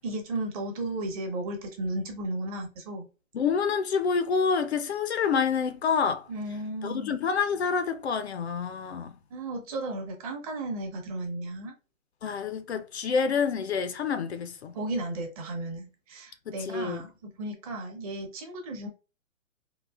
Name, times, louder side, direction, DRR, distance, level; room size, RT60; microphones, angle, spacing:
voice 1, 0.0-3.1 6.3-7.1 9.3-11.7 14.7-18.9, right 2 dB, 25° right, 0.8 m, -34 dB
voice 2, 3.3-6.3 6.8-9.2 12.2-14.8 16.5-17.1, left 6 dB, 55° left, 0.5 m, -28 dB
3.9 x 2.4 x 2.3 m
hypercardioid pair, 145°, 40 cm